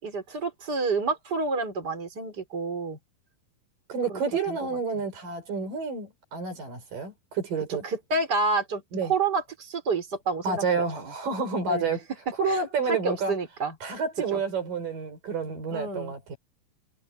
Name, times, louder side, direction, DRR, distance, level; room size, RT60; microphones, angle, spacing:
voice 1, 0.0-3.0 4.1-4.2 4.5-4.6 7.8-11.1 11.7-11.9 12.5-12.6 12.9-13.7 14.3-14.4 15.7-16.1, right 3 dB, 30° right, 5.1 m, -29 dB
voice 2, 3.9-7.8 8.9-9.1 10.4-12.0 12.4-13.3 13.8-16.4, right 4 dB, 80° right, 6.9 m, -29 dB
omnidirectional pair, 3.8 m